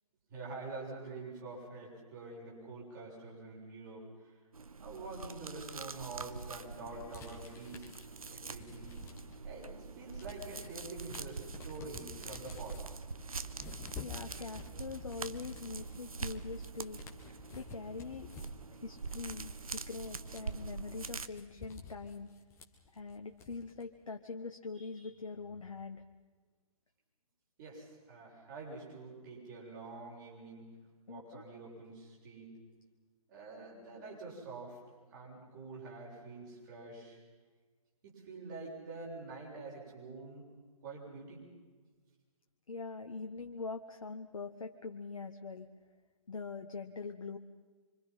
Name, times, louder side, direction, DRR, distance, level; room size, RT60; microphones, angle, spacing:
voice 1, 0.3-4.3 4.8-7.9 8.3-9.0 9.4-12.8 27.6-30.7 31.1-32.5 33.3-34.8 35.1-37.2 38.0-40.5 40.8-41.4, right 3 dB, 30° right, -3 dB, 7.4 m, -46 dB
sound 1, 4.5-21.3, right 4 dB, 70° right, 1.1 m, -44 dB
sound 2, 7.1-9.5 9.9-23.8, left 4 dB, 15° left, 1.9 m, -51 dB
voice 2, 14.0-17.0 17.5-18.3 18.7-22.3 22.9-26.0 31.1-31.4 42.7-45.7 46.3-47.4, left 4 dB, 60° left, 4 dB, 1.3 m, -43 dB
26.0 x 25.5 x 5.7 m, 1.4 s
figure-of-eight pair, 135°, 19 cm